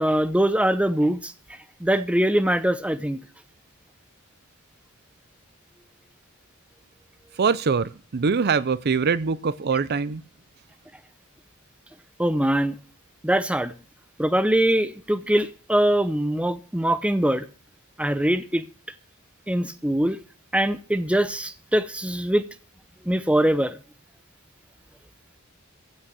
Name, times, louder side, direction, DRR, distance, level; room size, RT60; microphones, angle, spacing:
voice 1, 0.0-1.3 1.8-3.2 12.2-12.8 13.2-13.7 14.2-17.4 18.0-18.6 19.5-20.2 20.5-22.4 23.1-23.8, right 1 dB, 5° right, 0.8 m, -22 dB
voice 2, 7.4-10.2, right 5 dB, 50° right, 0.5 m, -23 dB
15.5 x 6.4 x 7.6 m
head